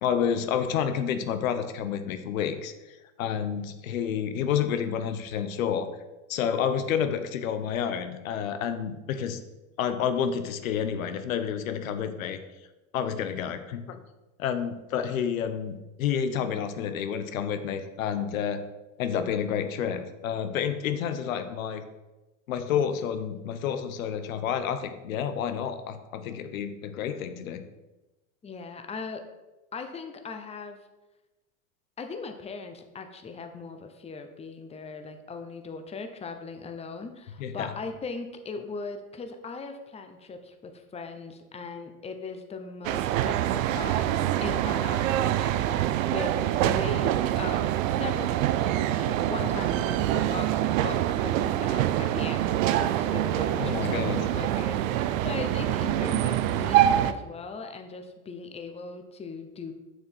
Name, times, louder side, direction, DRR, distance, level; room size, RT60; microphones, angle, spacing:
voice 1, 0.0-6.0 6.3-9.4 9.8-12.4 12.9-14.0 14.4-18.6 19.0-21.8 22.5-27.6 37.4-37.7 53.6-54.3, left 8 dB, 90° left, 9 dB, 0.9 m, -29 dB
voice 2, 28.4-29.2 29.7-30.8 32.0-59.7, left 4 dB, 15° left, 6 dB, 0.8 m, -39 dB
sound 1, 42.8-57.1, right 12 dB, 75° right, 0.6 m, -25 dB
6.9 x 6.3 x 4.5 m, 1.1 s
supercardioid pair, 110°, 40 cm